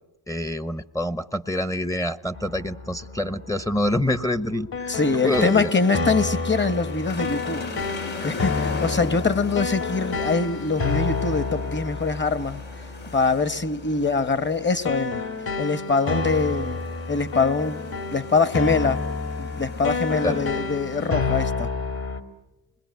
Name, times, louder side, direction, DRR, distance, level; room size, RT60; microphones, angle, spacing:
voice 1, 0.3-5.0 5.2-5.7 20.2-20.4, left 1 dB, 10° left, 12 dB, 0.9 m, -26 dB
sound 1, 2.3-22.2, left 4 dB, 55° left, 2.9 m, -30 dB
voice 2, 4.9-7.7 8.2-12.6 13.1-15.2 15.6-16.8 17.1-17.8 18.1-19.0 19.4-21.7, left 4 dB, 25° left, 14 dB, 1.3 m, -23 dB
sound 2, 5.1-21.1, left 3 dB, 85° left, 6.6 m, -40 dB
27.0 x 21.0 x 9.4 m, 1.0 s
cardioid pair, 65°, 43 cm